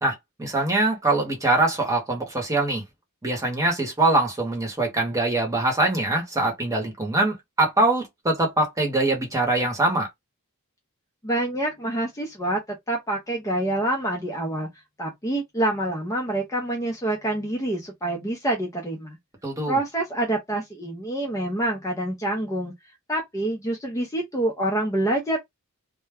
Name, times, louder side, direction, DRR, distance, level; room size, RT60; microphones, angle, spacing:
voice 1, 0.0-2.8 3.2-10.1 19.4-19.8, right 2 dB, 15° right, 0.9 m, -23 dB
voice 2, 11.2-12.6 12.9-14.7 15.0-19.2 19.7-22.7 23.1-25.4, right 1 dB, 15° left, 0.5 m, -26 dB
2.2 x 2.0 x 3.3 m
head